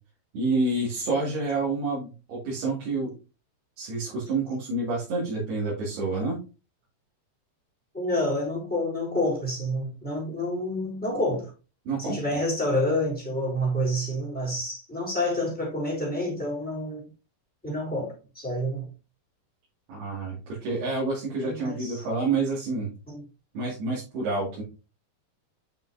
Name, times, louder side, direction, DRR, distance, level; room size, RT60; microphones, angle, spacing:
voice 1, 0.3-3.1 3.8-6.4 11.9-12.2 19.9-22.9 23.5-24.6, right 3 dB, 70° right, 4.3 m, -28 dB
voice 2, 7.9-11.5 12.0-17.0 17.6-18.8 21.4-22.0 23.1-23.2, left 1 dB, ahead, 2.9 m, -28 dB
8.9 x 5.5 x 2.8 m
omnidirectional pair, 4.7 m